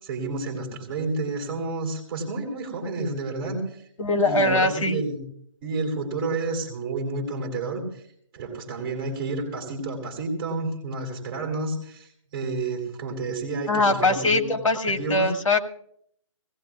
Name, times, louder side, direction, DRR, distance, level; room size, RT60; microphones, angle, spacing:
voice 1, 0.0-3.9 4.2-5.2 5.6-8.0 8.3-14.5 15.0-15.3, right 3 dB, 15° right, 0 dB, 3.0 m, -30 dB
voice 2, 4.0-5.0 13.7-15.6, left 2 dB, 90° left, 6 dB, 1.8 m, -22 dB
22.0 x 17.5 x 2.4 m, 0.66 s
hypercardioid pair, 170°, 16 cm